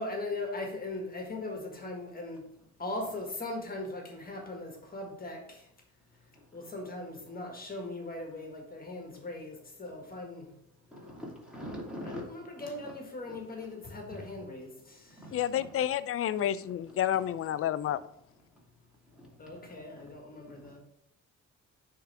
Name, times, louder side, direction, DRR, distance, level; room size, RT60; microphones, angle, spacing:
voice 1, 0.0-2.4 2.8-5.7 6.5-10.5 12.0-15.3 19.4-20.8, left 2 dB, 30° left, 1 dB, 1.6 m, -39 dB
voice 2, 10.9-12.2 12.5-12.9 13.3-13.4 14.1-14.2, left 1 dB, 5° right, -4 dB, 2.7 m, -42 dB
voice 3, 15.3-18.0, left 11 dB, 50° left, 15 dB, 0.4 m, -30 dB
9.4 x 3.8 x 3.4 m, 0.75 s
cardioid pair, 90°, 30 cm